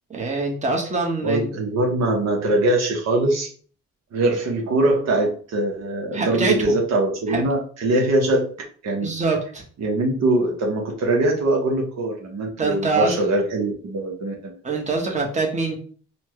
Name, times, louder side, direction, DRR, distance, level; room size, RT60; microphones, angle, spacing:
voice 1, 0.1-1.5 6.1-6.7 7.3-7.4 9.0-9.6 12.6-13.2 14.6-15.8, right 3 dB, 25° right, 0 dB, 1.1 m, -24 dB
voice 2, 1.2-3.5 4.1-8.5 8.8-9.1 9.8-14.6, right 2 dB, 60° right, 0 dB, 1.0 m, -22 dB
4.2 x 2.2 x 3.0 m, 0.43 s
cardioid pair, 90°, 30 cm